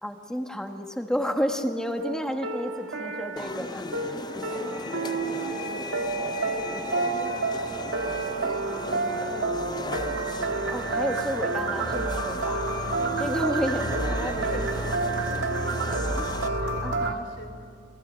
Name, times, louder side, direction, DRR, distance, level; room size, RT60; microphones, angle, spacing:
voice 1, 0.0-3.8 4.3-5.0 10.7-12.7 13.2-15.1 16.8-17.2, equal, 5° left, 4 dB, 1.4 m, -31 dB
sound 1, 2.0-17.1, right 3 dB, 90° right, 1.7 m, -29 dB
sound 2, 3.4-16.5, left 3 dB, 20° left, 0.5 m, -38 dB
sound 3, 4.4-9.4, left 1 dB, 40° left, 3.9 m, -39 dB
voice 2, 4.5-10.0 12.9-13.6 14.0-17.6, left 1 dB, 80° left, 5 dB, 3.5 m, -43 dB
29.0 x 21.0 x 6.3 m, 2.5 s
head